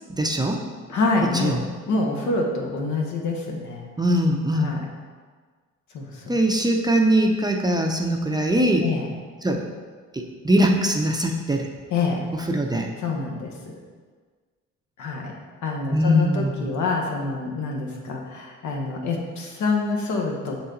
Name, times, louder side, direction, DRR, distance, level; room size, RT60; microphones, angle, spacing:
voice 1, 0.2-0.6 1.4-1.5 4.0-4.7 6.3-8.8 9.4-9.6 10.1-11.7 12.5-12.9 15.9-16.5, equal, 15° right, 2 dB, 0.6 m, -21 dB
voice 2, 0.9-3.9 4.5-4.8 5.9-6.4 8.8-9.1 11.9-12.2 13.0-13.8 15.0-15.3 15.6-20.6, left 3 dB, 75° left, 0 dB, 1.2 m, -26 dB
6.8 x 4.1 x 3.8 m, 1.5 s
cardioid pair, 90°, 30 cm